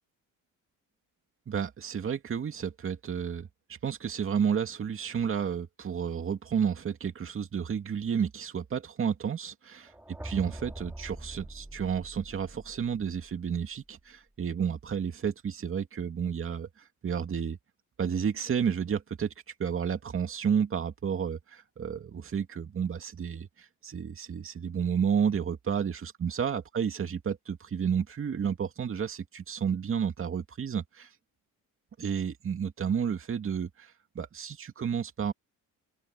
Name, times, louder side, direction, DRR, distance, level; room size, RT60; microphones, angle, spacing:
voice 1, 1.5-3.5 3.8-9.9 10.2-17.6 18.0-19.3 19.6-31.1 32.0-35.3, right 7 dB, 40° right, 2.4 m, -31 dB
sound 1, 9.8-13.8, right 1 dB, 5° right, 4.0 m, -44 dB
open air
cardioid pair, 115°, 33 cm